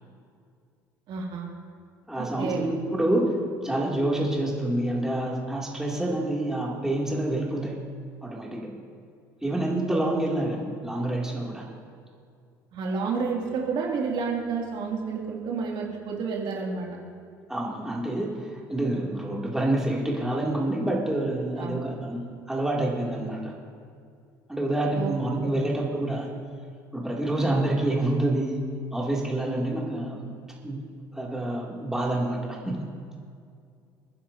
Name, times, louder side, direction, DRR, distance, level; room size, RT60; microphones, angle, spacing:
voice 1, 1.1-1.5 2.2-2.6 12.7-16.9 21.6-21.8 24.9-25.5, right 5 dB, 60° right, -2 dB, 2.6 m, -30 dB
voice 2, 2.1-3.3 3.6-7.8 8.2-8.7 9.4-11.6 17.5-22.2 22.5-23.5 24.5-26.3 26.9-28.6 28.9-30.3 30.6-30.8 31.1-32.8, right 1 dB, 5° right, -3 dB, 2.7 m, -27 dB
27.0 x 10.0 x 2.8 m, 2.3 s
hypercardioid pair, 65°, 10 cm